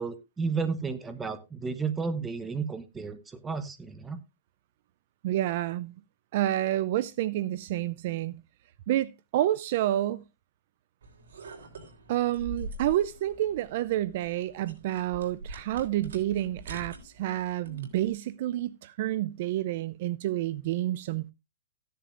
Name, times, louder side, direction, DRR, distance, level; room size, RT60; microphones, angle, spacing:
voice 1, 0.0-4.2, right 5 dB, 10° right, 1.0 m, -32 dB
voice 2, 5.2-5.9 6.3-8.4 8.9-10.2 12.1-21.3, right 13 dB, 40° right, 0.5 m, -29 dB
sound 1, 11.0-18.1, right 2 dB, 90° right, 3.7 m, -44 dB
14.5 x 10.0 x 2.5 m
hypercardioid pair, 170°, 0 cm